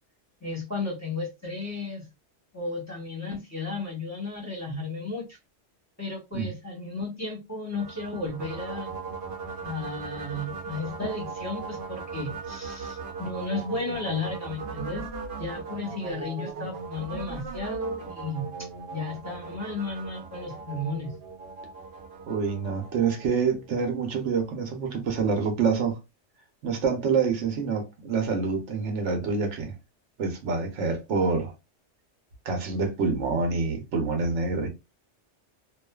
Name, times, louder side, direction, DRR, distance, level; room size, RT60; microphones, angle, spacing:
voice 1, 0.4-2.1 2.5-5.4 6.0-8.9 9.6-15.1 15.4-21.1, left 2 dB, 15° left, 0.9 m, -34 dB
sound 1, 7.7-23.9, right 4 dB, 60° right, 0.9 m, -38 dB
voice 2, 22.3-26.0 26.6-29.7 30.2-31.5 32.5-34.7, right 5 dB, 85° right, 1.1 m, -26 dB
2.5 x 2.4 x 2.2 m
omnidirectional pair, 1.2 m